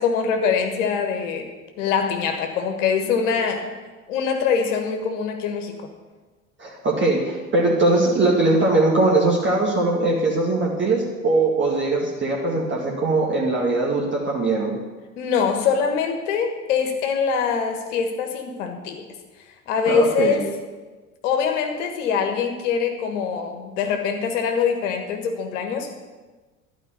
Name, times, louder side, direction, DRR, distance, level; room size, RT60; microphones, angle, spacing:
voice 1, 0.0-1.5 1.8-3.7 4.1-5.7 15.2-19.0 19.7-20.5 21.2-25.9, left 6 dB, 60° left, 5 dB, 1.5 m, -23 dB
voice 2, 6.6-14.8 19.9-20.4, right 2 dB, 30° right, -3 dB, 2.0 m, -21 dB
12.0 x 5.1 x 8.8 m, 1.3 s
figure-of-eight pair, 65°, 40 cm